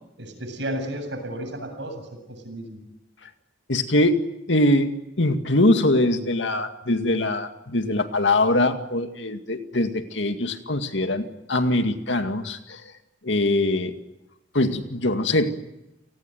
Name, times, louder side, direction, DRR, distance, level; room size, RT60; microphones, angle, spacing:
voice 1, 0.2-2.0 2.3-2.8, right 1 dB, 70° right, 6 dB, 7.8 m, -32 dB
voice 2, 3.7-12.8 13.2-14.0 14.5-15.5, left 1 dB, 75° left, 7 dB, 2.1 m, -22 dB
29.5 x 19.5 x 9.3 m, 0.94 s
head